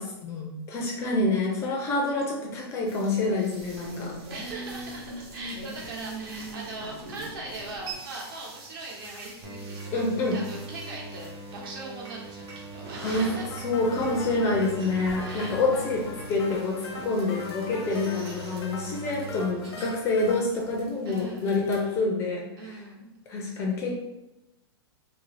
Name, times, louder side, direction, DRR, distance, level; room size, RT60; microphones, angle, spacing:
voice 1, 0.0-4.2 9.9-10.4 13.0-13.3 13.6-22.8 23.3-23.9, left 3 dB, 20° left, 0 dB, 0.3 m, -27 dB
sound 1, 2.9-22.0, right 2 dB, 85° right, 1.1 m, -43 dB
voice 2, 4.3-10.0 10.3-13.4 15.2-15.9 21.0-21.7 22.6-23.1, right 2 dB, 55° right, -2 dB, 1.0 m, -40 dB
sound 2, 9.4-19.4, right 3 dB, 30° right, 0.7 m, -41 dB
sound 3, 13.5-20.4, left 4 dB, 85° left, 0.6 m, -42 dB
2.7 x 2.6 x 3.1 m, 0.94 s
hypercardioid pair, 155°, 14 cm